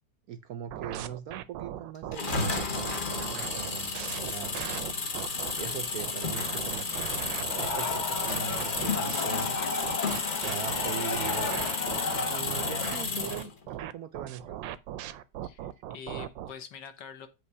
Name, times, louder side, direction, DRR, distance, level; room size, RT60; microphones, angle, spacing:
voice 1, 0.3-2.9 3.4-4.9 5.5-9.6 10.4-11.5 12.3-14.6, right 9 dB, 70° right, 0.9 m, -41 dB
sound 1, 0.7-5.5 6.0-9.2 9.8-16.5, right 12 dB, 85° right, 1.3 m, -38 dB
sound 2, 2.1-13.5, left 4 dB, 35° left, 0.9 m, -32 dB
sound 3, 7.5-13.0, left 4 dB, 55° left, 0.5 m, -34 dB
voice 2, 15.4-17.3, left 7 dB, 75° left, 1.6 m, -45 dB
7.9 x 3.0 x 5.4 m
omnidirectional pair, 2.0 m